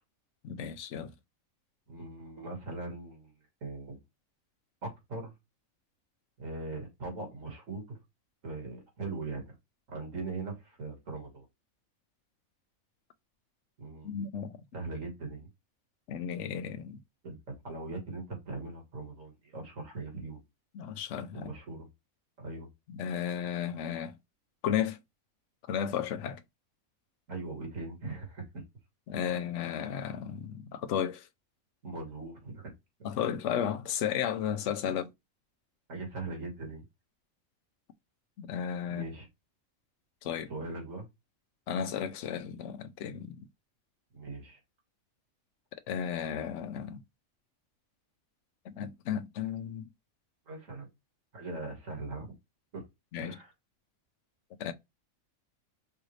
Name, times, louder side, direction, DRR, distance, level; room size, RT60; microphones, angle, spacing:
voice 1, 0.4-1.1 14.0-14.6 16.1-17.0 20.7-21.5 22.9-24.2 24.6-25.0 25.7-26.4 29.1-31.3 33.0-35.0 38.4-39.0 40.2-40.5 41.7-43.5 45.9-47.0 48.7-49.9 53.1-53.4 54.6-54.7, left 8 dB, 65° left, 0.9 m, -34 dB
voice 2, 1.9-3.3 3.6-4.0 4.8-5.3 6.4-8.0 8.4-9.4 9.9-11.4 13.8-14.1 14.7-15.5 17.2-20.4 21.3-21.9 22.4-22.7 27.3-28.4 31.8-32.7 35.9-36.8 38.9-39.3 40.5-41.1 44.1-44.6 50.5-50.9 51.3-52.3 52.7-52.8 53.2-53.5, right 3 dB, 65° right, 2.3 m, -40 dB
5.6 x 2.6 x 3.2 m
omnidirectional pair, 1.5 m